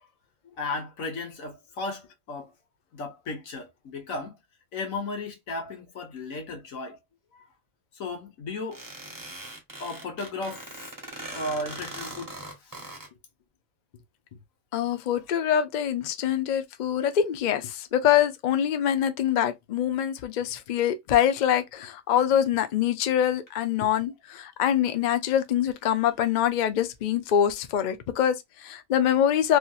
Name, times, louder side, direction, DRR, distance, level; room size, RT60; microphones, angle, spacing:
voice 1, 0.6-2.5 2.9-4.4 4.7-7.0 7.3-7.4 7.9-8.8 9.8-10.7 11.3-12.3 12.6-12.9, left 2 dB, 80° left, 1.5 m, -35 dB
sound 1, 8.7-13.1, right 1 dB, 20° right, 0.8 m, -40 dB
voice 2, 14.7-29.6, left 10 dB, 65° left, 0.4 m, -24 dB
3.1 x 2.7 x 2.3 m
omnidirectional pair, 1.4 m